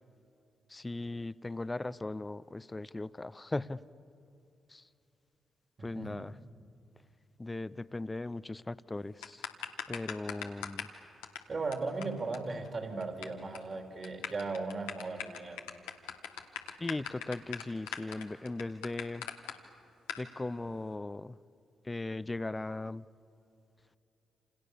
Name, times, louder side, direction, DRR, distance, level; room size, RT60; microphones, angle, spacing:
voice 1, 0.7-3.8 4.7-4.8 5.8-6.3 7.4-9.5 9.9-10.9 16.8-19.3 20.2-21.4 21.8-23.0, left 2 dB, 25° left, 17 dB, 0.8 m, -38 dB
voice 2, 5.8-6.3 11.5-15.7, right 3 dB, 50° right, 4 dB, 4.2 m, -37 dB
sound 1, 9.2-10.9 11.2-11.4 11.7-11.8 12.0-12.1 12.3-12.4 12.7-13.2 13.5-13.7 14.0-19.5 20.1-20.2, left 9 dB, 90° left, 1.6 m, -39 dB
28.0 x 28.0 x 7.0 m, 2.6 s
hypercardioid pair, 45°, 0 cm